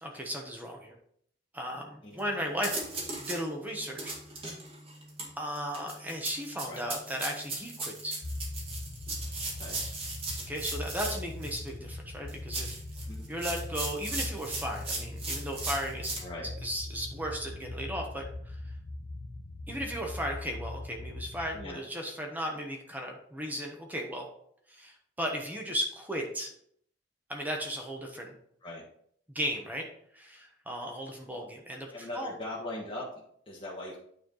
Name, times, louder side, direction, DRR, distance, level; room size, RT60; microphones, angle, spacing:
voice 1, 0.0-1.0 1.5-2.7 3.2-4.1 4.4-4.6 5.4-8.2 10.5-12.8 13.3-16.2 16.6-18.7 19.7-24.3 24.7-26.5 27.3-28.3 29.3-29.9 30.1-32.3, equal, 10° right, 1 dB, 1.0 m, -36 dB
sound 1, 2.2-2.3 2.6-3.4 3.8-11.7 12.3-16.2, right 3 dB, 30° right, 1.8 m, -37 dB
sound 2, 8.2-21.7, left 2 dB, 75° left, 0.9 m, -41 dB
voice 2, 31.9-34.0, left 1 dB, 30° left, -6 dB, 1.3 m, -40 dB
9.1 x 4.5 x 3.9 m, 0.65 s
head